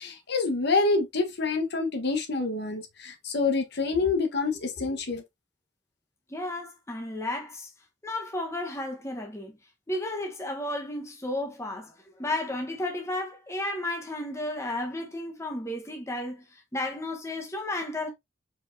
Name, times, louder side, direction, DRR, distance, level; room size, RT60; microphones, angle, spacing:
voice 1, 0.0-5.2, left 3 dB, 60° left, 1.0 m, -27 dB
voice 2, 6.3-7.7 8.0-9.5 9.9-16.4 16.7-18.1, left 1 dB, 15° left, 0.9 m, -33 dB
4.7 x 4.0 x 2.5 m
head